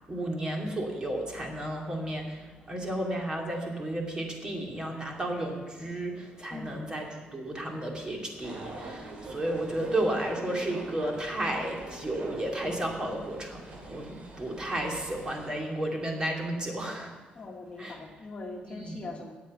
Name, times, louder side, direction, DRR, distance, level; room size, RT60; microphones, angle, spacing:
voice 1, 0.1-17.1 17.8-18.0 18.7-19.0, right 1 dB, 25° right, 0 dB, 2.3 m, -33 dB
voice 2, 6.5-6.9 17.3-19.3, left 2 dB, 35° left, 2 dB, 1.5 m, -41 dB
sound 1, 8.4-15.5, right 2 dB, 45° right, 2.4 m, -44 dB
9.3 x 8.4 x 8.8 m, 1.3 s
cardioid pair, 125°, 3 cm